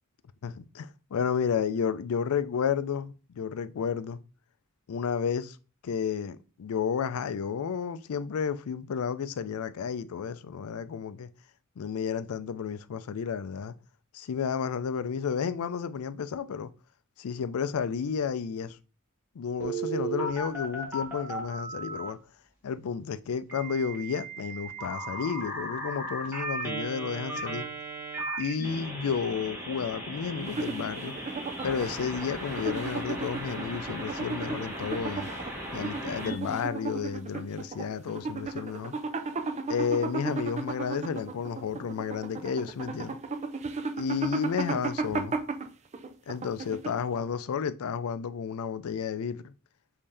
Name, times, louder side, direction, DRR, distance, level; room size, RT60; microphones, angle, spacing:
voice 1, 0.4-4.2 4.9-5.6 5.8-11.3 11.8-13.7 14.1-16.7 17.2-18.8 19.4-22.2 22.6-27.6 28.4-31.1 31.6-35.3 35.7-38.9 39.7-43.2 44.0-45.4 46.3-49.5, left 6 dB, 80° left, 0.4 m, -32 dB
Telephone, 19.6-22.1 23.5-36.3, right 2 dB, 10° right, 1.5 m, -36 dB
sound 1, 30.4-47.2, right 4 dB, 30° right, 0.4 m, -35 dB
5.4 x 2.7 x 3.3 m
head